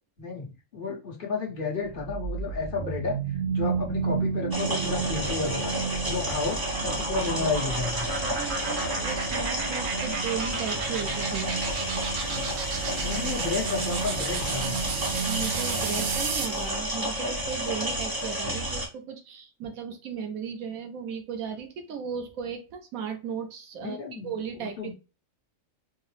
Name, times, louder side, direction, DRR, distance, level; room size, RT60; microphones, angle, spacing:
voice 1, 0.7-3.2 3.5-5.7 6.0-8.1 13.0-14.8 23.8-24.9, left 4 dB, 40° left, -2 dB, 1.2 m, -32 dB
sound 1, 1.8-16.6, right 5 dB, 60° right, 0.8 m, -31 dB
sound 2, 4.5-18.9, equal, 20° right, 0.8 m, -31 dB
voice 2, 8.2-11.5 15.3-24.9, right 7 dB, 90° right, 6 dB, 1.2 m, -36 dB
4.6 x 2.0 x 3.1 m, 0.30 s
omnidirectional pair, 1.4 m